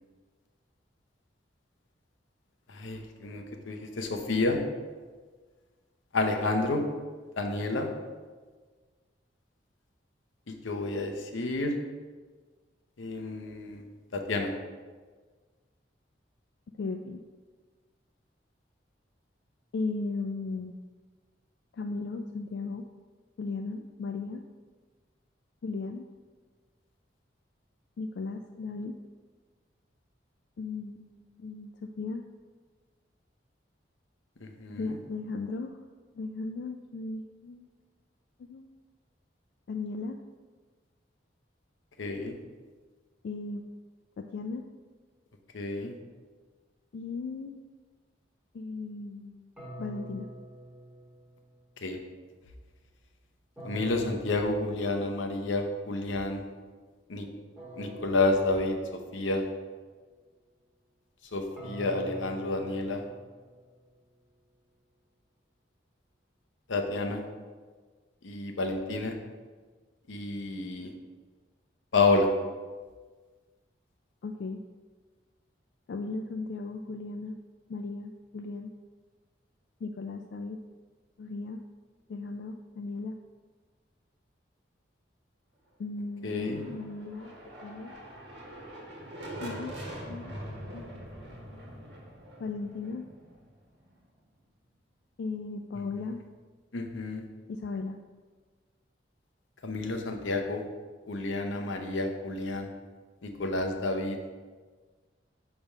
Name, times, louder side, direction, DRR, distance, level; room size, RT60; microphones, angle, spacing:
voice 1, 2.7-4.6 6.1-6.8 7.4-7.9 10.5-11.7 13.0-13.8 14.1-14.5 34.4-35.0 42.0-42.3 45.5-45.9 51.8-52.0 53.6-56.4 57.1-57.3 57.8-58.8 59.1-59.4 61.3-63.0 66.7-67.2 68.2-69.1 70.1-70.9 71.9-72.3 86.2-86.6 96.7-97.2 99.6-100.6 101.1-102.7 103.2-104.2, left 2 dB, 90° left, 4 dB, 0.7 m, -30 dB
voice 2, 16.8-17.2 19.7-20.7 21.7-22.8 23.4-24.4 25.6-26.1 28.0-29.0 30.6-32.2 34.7-35.7 36.1-37.7 38.5-38.7 39.7-40.2 43.2-43.6 44.2-44.6 46.9-47.6 48.5-49.5 49.8-50.3 74.2-74.6 75.9-77.4 77.7-78.7 79.8-80.6 81.2-81.6 82.1-83.2 85.8-87.9 89.4-89.8 90.1-90.4 90.7-91.0 92.4-93.1 95.2-96.2 97.5-98.0, left 3 dB, 65° left, 5 dB, 0.3 m, -36 dB
sound 1, 49.6-51.6 53.6-55.4 57.6-59.4 61.6-63.8, right 1 dB, 5° right, 1.1 m, -45 dB
sound 2, 86.2-94.0, right 1 dB, 65° right, 1.3 m, -43 dB
5.9 x 3.4 x 5.4 m, 1.4 s
head